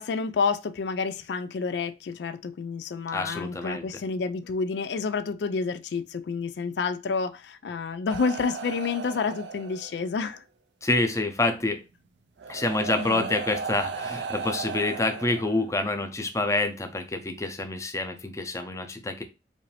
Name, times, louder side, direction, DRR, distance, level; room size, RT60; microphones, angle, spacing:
voice 1, 0.0-10.4 12.9-13.3, left 5 dB, 75° left, 0.4 m, -29 dB
voice 2, 3.1-3.8 10.8-11.8 12.5-19.2, left 2 dB, 15° left, 0.6 m, -27 dB
sound 1, 8.1-10.2 11.6-11.7 12.4-16.0 17.1-17.2, right 4 dB, 90° right, 0.6 m, -36 dB
5.1 x 2.6 x 3.3 m
head